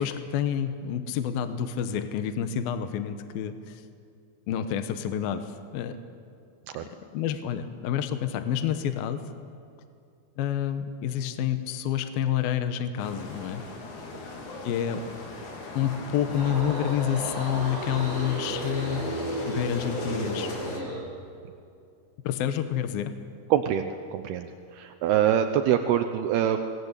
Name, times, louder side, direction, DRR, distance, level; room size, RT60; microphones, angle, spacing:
voice 1, 0.0-3.8 4.5-6.0 6.8-9.2 10.4-13.6 14.6-15.2 15.7-19.2 19.5-20.7 22.2-23.1, left 9 dB, 70° left, 9 dB, 2.7 m, -29 dB
sound 1, 13.0-20.8, left 3 dB, 50° left, 3.8 m, -40 dB
sound 2, 16.2-21.1, right 1 dB, 15° right, 4.1 m, -34 dB
voice 2, 23.5-26.6, right 10 dB, 75° right, 7 dB, 2.7 m, -25 dB
28.0 x 20.5 x 8.3 m, 2.5 s
omnidirectional pair, 4.9 m